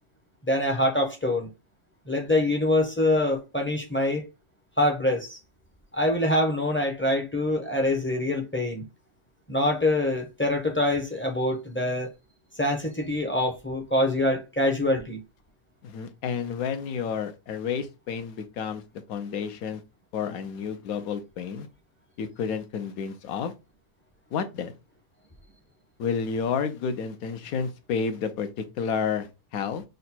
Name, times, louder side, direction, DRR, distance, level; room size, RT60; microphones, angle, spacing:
voice 1, 0.4-1.5 2.1-4.2 4.8-5.4 5.9-8.8 9.5-12.1 12.6-15.2, left 1 dB, 20° left, 0.3 m, -25 dB
voice 2, 15.8-18.8 19.1-19.8 20.1-21.7 22.2-23.5 24.3-24.7 26.0-29.8, left 6 dB, 80° left, 1.1 m, -30 dB
3.9 x 2.2 x 4.2 m
omnidirectional pair, 1.5 m